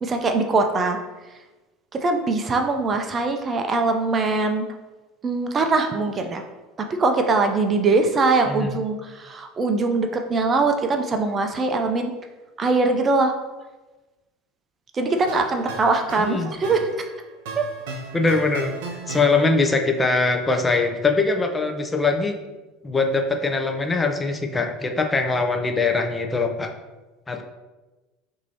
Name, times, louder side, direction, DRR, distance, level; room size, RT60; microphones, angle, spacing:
voice 1, 0.0-1.0 2.0-4.7 5.2-6.4 7.0-12.1 12.6-13.3 14.9-16.9 17.6-17.7, right 3 dB, 30° right, 5 dB, 0.5 m, -22 dB
voice 2, 8.5-8.8 16.2-16.5 18.1-18.7 19.1-22.3 22.8-26.7 27.3-27.4, left 3 dB, 20° left, 4 dB, 0.6 m, -22 dB
sound 1, 15.1-19.8, right 3 dB, 70° right, 0.7 m, -36 dB
5.9 x 2.7 x 2.8 m, 1.2 s
hypercardioid pair, 75°, 0 cm